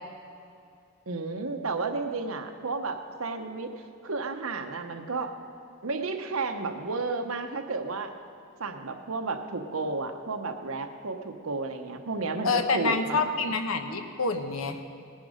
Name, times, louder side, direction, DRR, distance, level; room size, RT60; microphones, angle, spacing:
voice 1, 1.1-5.4 5.8-8.1 8.6-13.5, right 3 dB, 80° right, 6 dB, 1.0 m, -32 dB
voice 2, 12.4-14.8, left 4 dB, 80° left, 7 dB, 1.1 m, -27 dB
19.0 x 10.5 x 5.1 m, 2.5 s
head